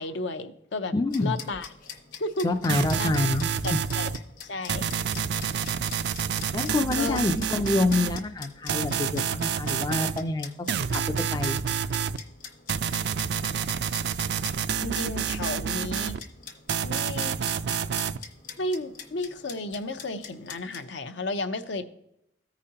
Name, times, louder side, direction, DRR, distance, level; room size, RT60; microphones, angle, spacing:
voice 1, 0.0-1.7 2.2-2.5 3.0-3.1 3.6-4.1 4.4-4.9 6.9-7.2 14.1-14.4 14.7-16.2 16.8-17.4 18.6-21.9, left 2 dB, 75° left, 9 dB, 0.6 m, -33 dB
voice 2, 0.9-1.4 2.4-3.8 6.5-11.0 11.3-11.6, left 2 dB, 20° left, 6 dB, 0.3 m, -27 dB
sound 1, 1.1-20.8, left 6 dB, 45° left, 0.9 m, -45 dB
sound 2, 2.7-4.2 4.7-8.2 8.7-10.2 10.7-12.2 12.7-16.2 16.7-18.2, right 7 dB, 60° right, 0.3 m, -28 dB
14.5 x 5.0 x 2.8 m, 0.80 s
head